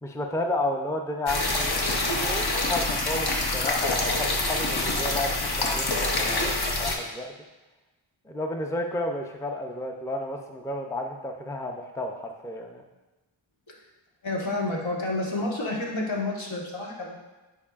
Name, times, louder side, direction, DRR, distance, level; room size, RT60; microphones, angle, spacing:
voice 1, 0.0-7.3 8.2-12.8, left 1 dB, 5° left, 3 dB, 0.5 m, -32 dB
sound 1, 1.3-7.0, left 2 dB, 55° left, 0.9 m, -26 dB
voice 2, 14.2-17.1, left 2 dB, 75° left, -3 dB, 1.5 m, -30 dB
9.7 x 4.6 x 2.5 m, 1.2 s
wide cardioid pair, 60°, 47 cm